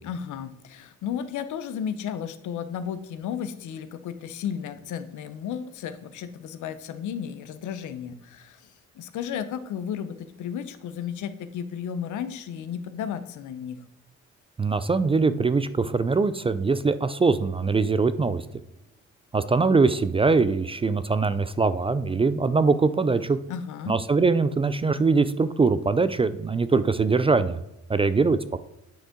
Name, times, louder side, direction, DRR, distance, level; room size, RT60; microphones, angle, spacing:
voice 1, 0.0-13.8 23.5-24.0, left 8 dB, 75° left, 11 dB, 0.8 m, -34 dB
voice 2, 14.6-18.4 19.3-23.4 23.9-27.6 27.9-28.6, right 4 dB, 20° right, 13 dB, 0.3 m, -22 dB
8.8 x 5.3 x 3.7 m, 0.88 s
cardioid pair, 90°, 30 cm